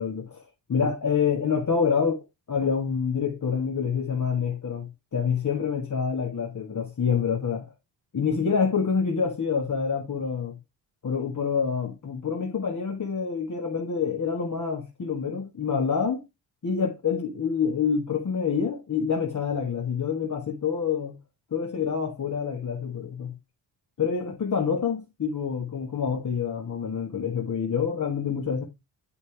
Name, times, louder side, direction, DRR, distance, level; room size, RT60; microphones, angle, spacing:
voice 1, 0.0-2.2 2.5-7.7 8.1-10.6 11.0-16.2 16.6-21.2 21.5-23.3 24.0-28.6, left 6 dB, 40° left, 1.6 m, -27 dB
8.2 x 5.3 x 3.4 m
hypercardioid pair, 50°, 48 cm